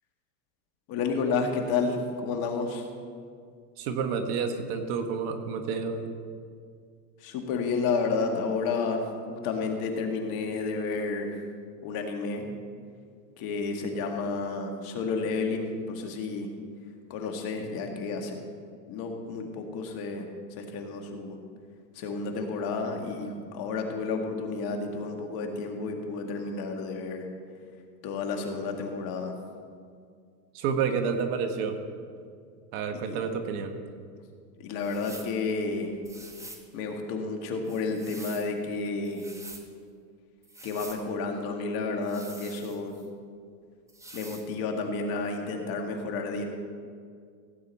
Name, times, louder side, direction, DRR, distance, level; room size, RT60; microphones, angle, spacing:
voice 1, 0.9-2.9 7.2-11.4 11.8-12.5 13.4-16.5 17.1-18.4 18.9-20.3 20.6-21.4 21.9-27.3 28.0-29.3 33.1-33.2 34.6-35.9 36.7-39.3 40.6-42.9 44.1-46.4, left 4 dB, 45° left, 3 dB, 2.0 m, -31 dB
voice 2, 3.8-6.1 30.5-31.8 32.7-33.8, right 6 dB, 50° right, 7 dB, 1.4 m, -29 dB
sound 1, 34.8-35.4 36.0-36.7 37.6-38.5 39.0-39.7 40.4-41.0 42.0-43.1 43.9-44.5, right 2 dB, 5° right, 1.1 m, -46 dB
16.5 x 8.7 x 4.3 m, 2.1 s
hypercardioid pair, 110°, 49 cm